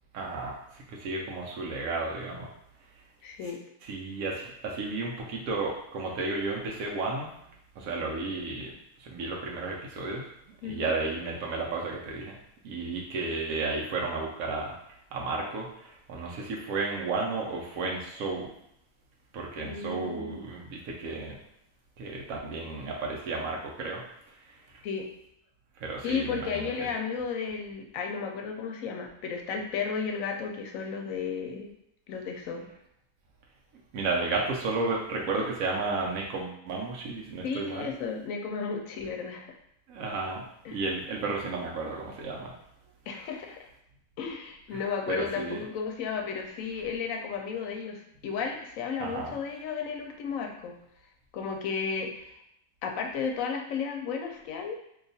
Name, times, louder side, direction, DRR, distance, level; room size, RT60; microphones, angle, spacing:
voice 1, 0.1-2.5 3.9-7.3 7.8-8.7 9.0-10.3 10.6-12.3 12.6-14.8 15.1-18.5 19.3-21.4 22.0-24.0 25.8-26.9 33.9-37.9 39.9-40.4 40.7-42.5 44.7-44.8 45.1-45.6 49.0-49.4, right 3 dB, 90° right, -1 dB, 1.0 m, -33 dB
voice 2, 3.2-3.6 10.6-10.9 19.6-20.4 24.8-25.1 26.0-31.7 32.1-32.7 37.4-39.5 40.6-40.8 43.1-43.7 44.2-50.7 51.3-52.4 52.8-54.8, left 5 dB, 85° left, 2 dB, 1.0 m, -33 dB
2.8 x 2.4 x 3.9 m, 0.78 s
omnidirectional pair, 1.4 m